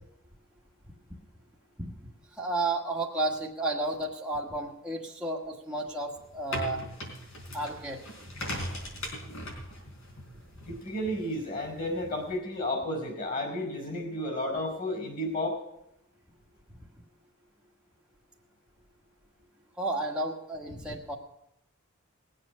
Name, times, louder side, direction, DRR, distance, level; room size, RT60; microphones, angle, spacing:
voice 1, 1.8-6.8 7.5-8.0 19.8-21.1, right 2 dB, 5° right, -2 dB, 1.4 m, -32 dB
sound 1, 6.1-12.4, left 1 dB, 65° left, 4.3 m, -40 dB
voice 2, 10.6-15.6, left 1 dB, 40° left, 2 dB, 4.9 m, -32 dB
19.5 x 7.7 x 6.4 m, 0.81 s
head